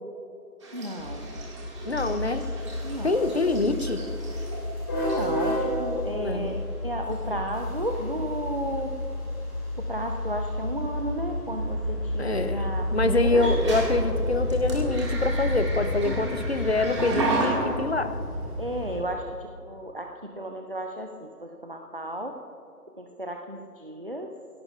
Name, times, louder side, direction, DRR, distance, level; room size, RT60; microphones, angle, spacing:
sound 1, 0.6-4.7 5.1-5.5 6.5-6.6 7.1-7.5 7.8-8.1 10.1-10.2 13.2-17.5, right 2 dB, 20° right, 2.0 m, -34 dB
voice 1, 0.7-1.3 2.8-3.3 5.0-9.0 9.8-13.5 18.6-22.4 23.0-24.3, right 1 dB, 35° right, 3 dB, 0.6 m, -34 dB
sound 2, 1.0-19.0, left 1 dB, 15° left, 2.4 m, -30 dB
voice 2, 1.9-2.5 3.0-4.0 6.2-6.6 7.3-7.4 12.2-18.2, left 3 dB, 40° left, 10 dB, 0.8 m, -26 dB
23.5 x 17.0 x 2.5 m, 2.6 s
figure-of-eight pair, 165°, 48 cm